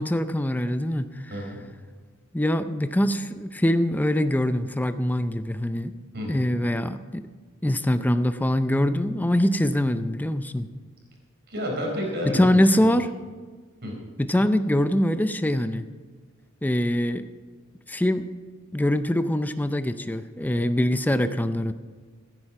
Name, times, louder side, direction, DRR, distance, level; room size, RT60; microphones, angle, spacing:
voice 1, 0.0-1.4 2.3-5.9 6.3-7.2 7.6-10.7 12.2-13.1 14.2-15.8 16.6-17.3 17.9-18.3 18.7-21.7, left 1 dB, 10° left, 10 dB, 0.5 m, -23 dB
voice 2, 1.3-1.6 6.1-6.5 11.5-12.9 13.8-14.0, equal, 50° right, 0 dB, 4.3 m, -30 dB
15.0 x 9.8 x 5.9 m, 1.4 s
head